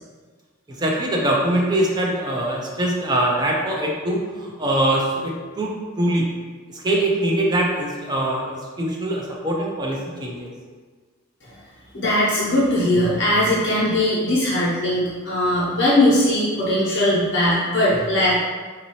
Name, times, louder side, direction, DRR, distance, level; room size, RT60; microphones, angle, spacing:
voice 1, 0.8-6.3 6.7-10.5, right 1 dB, 20° right, -2 dB, 0.5 m, -23 dB
voice 2, 11.9-18.4, left 1 dB, 55° left, -8 dB, 1.0 m, -19 dB
3.9 x 2.7 x 3.0 m, 1.5 s
head